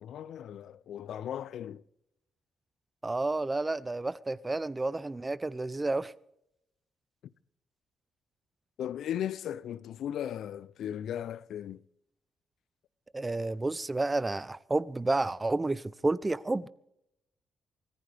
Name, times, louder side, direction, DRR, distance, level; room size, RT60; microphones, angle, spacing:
voice 1, 0.0-1.8 8.8-11.8, left 10 dB, 75° left, 0.4 m, -37 dB
voice 2, 3.0-6.1 13.1-16.7, right 2 dB, 20° right, 0.6 m, -30 dB
24.5 x 15.0 x 3.4 m
cardioid pair, 75°, 0 cm